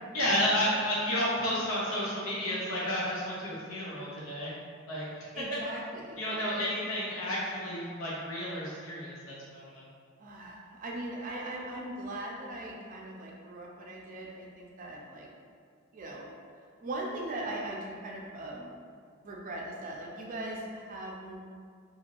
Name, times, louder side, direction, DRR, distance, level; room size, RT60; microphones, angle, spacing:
voice 1, 0.1-4.5 4.9-5.1 6.2-9.8, equal, 80° left, -7 dB, 0.6 m, -31 dB
voice 2, 5.3-6.6 10.2-15.3 15.9-16.3 16.8-18.8 19.2-21.4, right 1 dB, 40° right, -2 dB, 0.4 m, -40 dB
3.1 x 2.5 x 2.5 m, 2.1 s
head